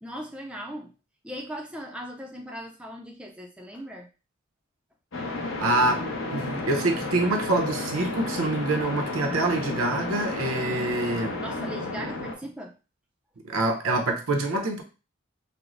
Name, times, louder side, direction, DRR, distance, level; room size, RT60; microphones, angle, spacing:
voice 1, 0.0-0.9 1.2-4.1 11.2-12.8, equal, 5° right, 1 dB, 0.3 m, -38 dB
sound 1, 5.1-12.3, left 2 dB, 70° left, 0.8 m, -32 dB
voice 2, 5.6-6.0 6.3-11.4 13.5-14.8, right 2 dB, 85° right, 3 dB, 0.7 m, -26 dB
4.5 x 2.0 x 2.5 m, 0.32 s
head